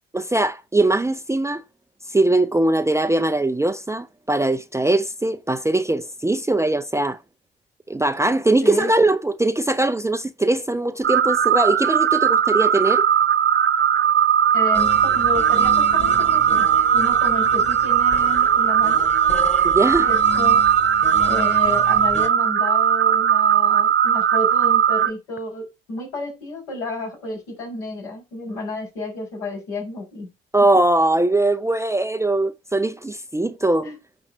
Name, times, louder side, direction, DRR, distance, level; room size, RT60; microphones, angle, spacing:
voice 1, 0.1-1.6 2.1-7.2 7.9-13.1 19.6-20.1 30.5-33.9, right 2 dB, 10° right, 0.6 m, -21 dB
sound 1, 11.0-25.1, right 8 dB, 40° right, 1.1 m, -18 dB
voice 2, 14.5-19.1 20.0-20.6 21.2-30.3 33.8-34.0, left 2 dB, 70° left, 5.4 m, -31 dB
sound 2, 14.7-22.3, left 4 dB, 20° left, 2.1 m, -34 dB
8.5 x 5.3 x 5.7 m
figure-of-eight pair, 45°, 30 cm